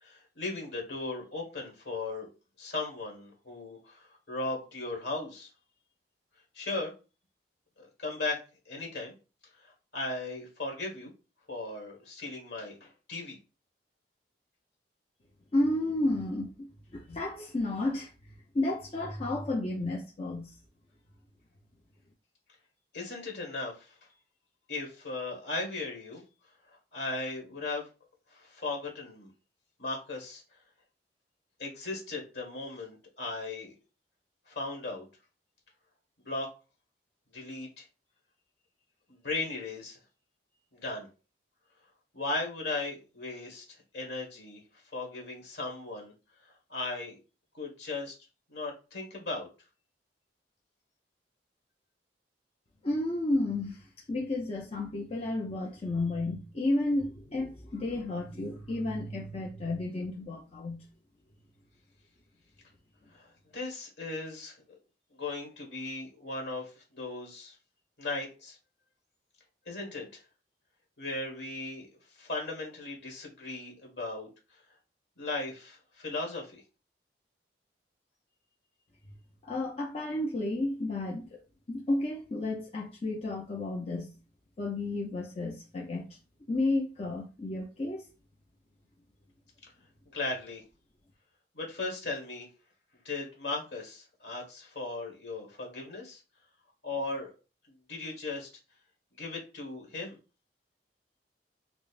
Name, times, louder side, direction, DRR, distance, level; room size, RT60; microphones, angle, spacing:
voice 1, 0.0-2.3 2.6-5.5 6.5-6.9 7.8-8.4 8.7-9.1 9.6-11.1 11.5-13.4 22.9-23.9 24.7-26.2 26.9-27.8 28.3-29.3 29.8-30.4 31.6-33.7 34.5-35.0 36.2-36.5 37.3-37.8 39.1-40.0 40.7-41.1 42.1-43.6 43.9-44.6 44.9-46.1 46.7-47.1 47.5-48.1 48.5-49.5 63.1-63.3 63.5-64.5 65.2-67.5 68.0-68.6 69.7-70.2 71.0-71.9 72.2-74.3 75.2-76.6 90.1-90.6 91.5-92.5 93.0-96.2 96.8-97.3 97.9-98.5 99.2-100.2, left 3 dB, 65° left, 1.4 m, -37 dB
voice 2, 15.5-16.5 16.9-18.1 18.5-20.5 52.8-53.8 54.1-60.8 79.4-81.4 81.7-84.1 84.6-86.1 86.5-88.0, left 2 dB, 35° left, 0.5 m, -32 dB
5.2 x 2.0 x 2.5 m
head